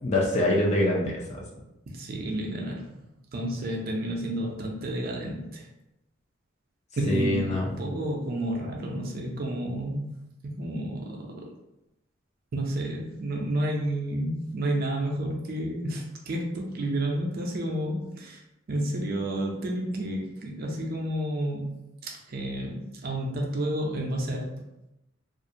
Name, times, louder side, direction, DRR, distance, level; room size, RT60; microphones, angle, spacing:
voice 1, 0.0-1.4 7.1-7.7, left 1 dB, 35° left, -2 dB, 0.4 m, -24 dB
voice 2, 1.9-3.0 3.3-5.7 7.0-11.5 12.5-18.4 18.7-24.4, right 1 dB, 50° right, 0 dB, 0.5 m, -31 dB
2.4 x 2.1 x 2.6 m, 0.91 s
head